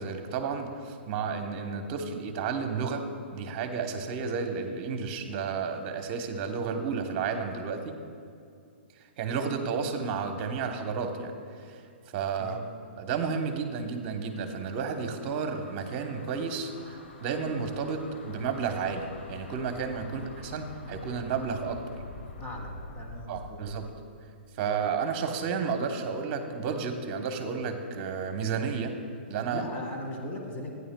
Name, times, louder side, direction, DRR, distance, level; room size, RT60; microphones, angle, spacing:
voice 1, 0.0-3.0 3.3-7.9 9.2-11.3 11.7-11.8 12.1-12.6 13.0-21.8 23.3-23.9 24.6-28.9 29.3-29.6, right 5 dB, 40° right, 6 dB, 0.9 m, -32 dB
sound 1, 14.2-24.0, left 2 dB, 85° left, 1.3 m, -46 dB
voice 2, 22.4-23.6 29.5-30.7, left 1 dB, 25° left, 1 dB, 1.8 m, -38 dB
14.5 x 9.4 x 2.2 m, 2.4 s
hypercardioid pair, 135°, 6 cm